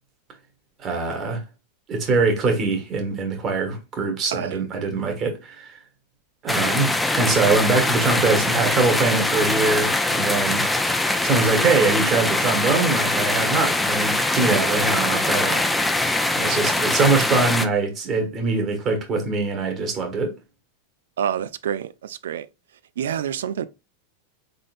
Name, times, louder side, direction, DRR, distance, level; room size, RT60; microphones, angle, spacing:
voice 1, 0.8-1.4 1.9-5.8 6.4-10.7 11.2-15.6 16.3-20.3, right 3 dB, 35° right, 1.4 m, -23 dB
sound 1, 6.5-17.7, left 2 dB, 5° left, 0.5 m, -22 dB
voice 2, 21.2-22.5 23.0-23.7, right 9 dB, 85° right, 0.3 m, -27 dB
3.8 x 3.8 x 2.5 m
hypercardioid pair, 115°, 0 cm